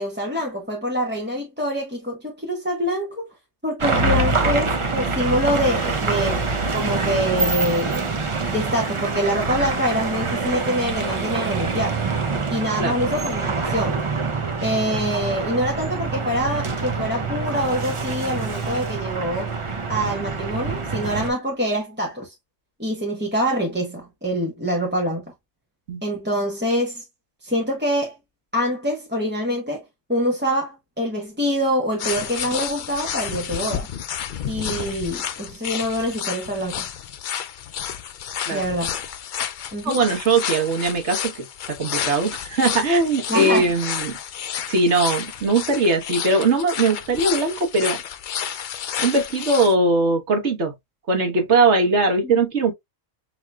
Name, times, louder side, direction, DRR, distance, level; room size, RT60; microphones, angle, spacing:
voice 1, 0.0-3.3 3.6-6.4 6.7-8.1 8.5-12.0 12.5-14.0 14.6-19.5 19.9-22.3 22.8-25.3 26.0-27.0 27.4-28.1 28.5-29.8 30.1-33.9 34.5-36.9 38.5-38.9 39.7-40.0 43.3-43.6 52.2-52.4, equal, 10° right, 1.0 m, -25 dB
sound 1, 3.8-21.3, right 4 dB, 30° right, 0.6 m, -25 dB
sound 2, 32.0-49.7, left 9 dB, 60° left, 0.5 m, -31 dB
voice 2, 39.8-44.2 44.7-48.0 49.0-50.7 51.1-52.7, right 3 dB, 60° right, 1.7 m, -20 dB
5.8 x 2.9 x 2.3 m
omnidirectional pair, 1.3 m